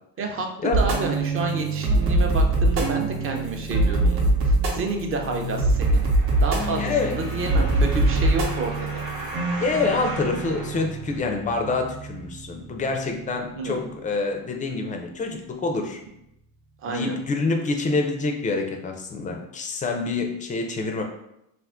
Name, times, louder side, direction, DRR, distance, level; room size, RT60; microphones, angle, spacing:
voice 1, 0.2-6.0 6.4-9.0 13.5-13.7 16.8-17.1, right 3 dB, 35° right, 3 dB, 0.5 m, -29 dB
sound 1, 0.7-13.3, right 2 dB, 65° right, 0.9 m, -24 dB
sound 2, 5.7-11.6 12.2-12.3, right 1 dB, 90° right, 1.1 m, -38 dB
voice 2, 6.7-7.2 9.6-16.0 16.9-21.0, left 3 dB, 20° left, 3 dB, 0.3 m, -26 dB
2.4 x 2.4 x 3.5 m, 0.81 s
cardioid pair, 115°, 40 cm